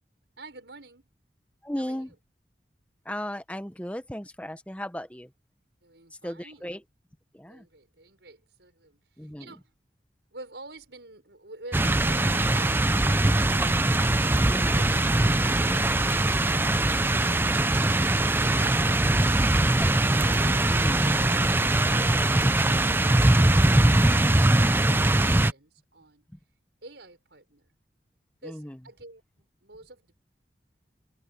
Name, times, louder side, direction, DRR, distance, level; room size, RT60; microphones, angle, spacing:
voice 1, 0.4-1.1 1.7-2.1 5.8-6.7 7.5-9.7 10.3-14.0 18.4-19.8 20.2-26.3 26.8-27.7 28.4-30.2, right 2 dB, 85° right, 6.3 m, -48 dB
voice 2, 1.6-2.1 3.0-5.3 6.2-6.8 7.3-7.6 9.2-9.5 14.5-14.9 19.0-19.1 20.7-21.1 28.4-28.8, equal, 5° left, 1.2 m, -36 dB
sound 1, 11.7-25.5, right 1 dB, 10° right, 0.5 m, -22 dB
open air
head